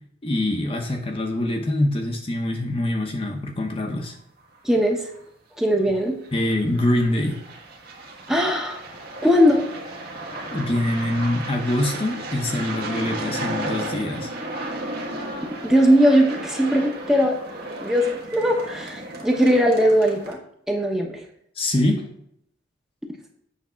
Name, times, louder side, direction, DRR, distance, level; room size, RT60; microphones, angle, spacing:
voice 1, 0.2-4.2 6.3-7.4 10.5-14.3 21.6-22.0, left 1 dB, 30° left, 2 dB, 0.8 m, -24 dB
sound 1, 4.5-4.6 5.1-5.2 6.2-20.3, right 1 dB, 50° right, 1.4 m, -34 dB
voice 2, 4.6-5.0 5.6-6.1 8.3-8.8 9.2-9.7 15.6-17.4 17.8-20.4 20.7-21.2, equal, ahead, 1 dB, 0.9 m, -19 dB
8.4 x 3.5 x 5.7 m, 0.72 s
head